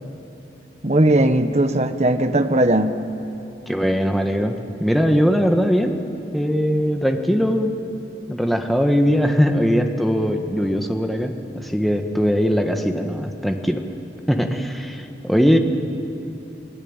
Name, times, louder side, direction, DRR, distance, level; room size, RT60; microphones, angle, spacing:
voice 1, 0.8-3.0, right 1 dB, 40° right, 9 dB, 1.1 m, -18 dB
voice 2, 3.7-6.0 6.3-7.7 8.3-13.8 14.3-15.6, equal, ahead, 4 dB, 1.4 m, -20 dB
28.0 x 20.0 x 9.0 m, 2.9 s
head